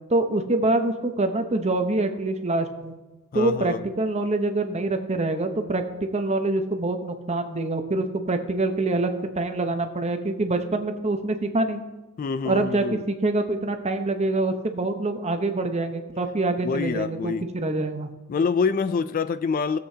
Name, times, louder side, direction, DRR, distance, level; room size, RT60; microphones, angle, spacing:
voice 1, 0.1-2.9 3.3-5.8 6.1-9.1 9.4-11.8 12.4-18.1, right 2 dB, 30° right, 6 dB, 0.9 m, -25 dB
voice 2, 3.3-3.8 12.2-13.0 16.6-17.5 18.3-19.8, left 5 dB, 40° left, 14 dB, 0.3 m, -26 dB
18.5 x 7.8 x 2.8 m, 1.1 s
head